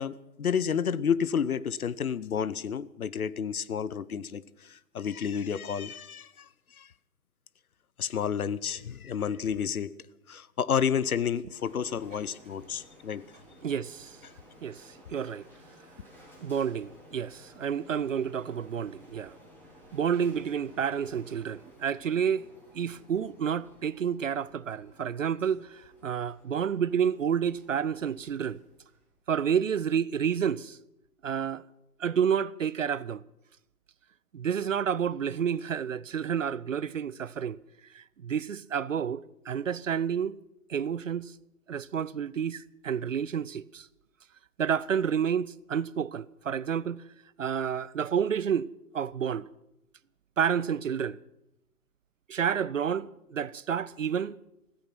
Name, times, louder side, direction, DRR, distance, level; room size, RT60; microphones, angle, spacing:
voice 1, 0.0-6.9 8.0-9.9 10.3-13.3 14.2-14.3, left 7 dB, 65° left, 0.9 m, -30 dB
Printer, 11.5-29.2, equal, 5° left, 3.4 m, -56 dB
voice 2, 13.6-14.2 14.6-15.5 16.4-19.4 19.9-22.5 22.7-28.6 29.3-30.8 31.2-31.6 32.0-33.2 34.3-37.6 37.9-40.4 40.7-41.3 41.7-43.9 44.6-47.0 47.4-48.7 48.9-49.5 50.4-51.2 52.3-54.4, right 8 dB, 55° right, 0.6 m, -30 dB
16.0 x 14.5 x 5.9 m
figure-of-eight pair, 140°, 48 cm